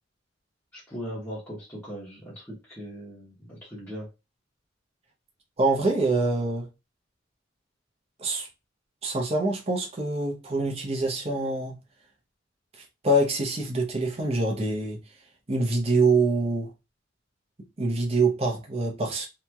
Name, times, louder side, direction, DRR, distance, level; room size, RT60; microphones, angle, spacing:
voice 1, 0.7-4.1, equal, 10° left, 1.0 m, -39 dB
voice 2, 5.6-6.7 8.2-8.5 9.0-11.8 13.0-15.0 15.5-16.7 17.8-19.3, right 2 dB, 30° right, 0.7 m, -25 dB
3.0 x 2.7 x 2.3 m
head